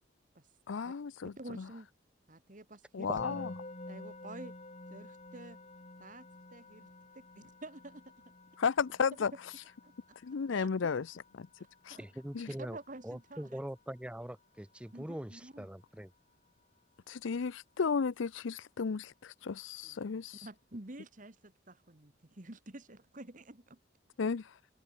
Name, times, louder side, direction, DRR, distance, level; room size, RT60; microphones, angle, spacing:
voice 1, 0.7-1.3 2.9-3.5 8.6-9.3 10.2-11.0 11.4-11.5 11.9-12.0 12.3-12.5 17.2-17.5 17.8-20.5 24.2-24.5, left 5 dB, 75° left, 0.5 m, -33 dB
voice 2, 1.2-1.9 2.3-3.1 3.9-4.5 4.9-5.6 6.0-6.9 7.1-7.9 9.8-9.9 10.5-10.9 11.9-12.0 12.5-13.6 14.9-15.7 19.8-23.8, right 2 dB, 40° right, 1.6 m, -49 dB
voice 3, 3.1-3.5 12.0-12.8 13.0-16.1, equal, 5° right, 0.6 m, -42 dB
Musical instrument, 3.2-14.3, left 1 dB, 35° left, 2.2 m, -51 dB
open air
head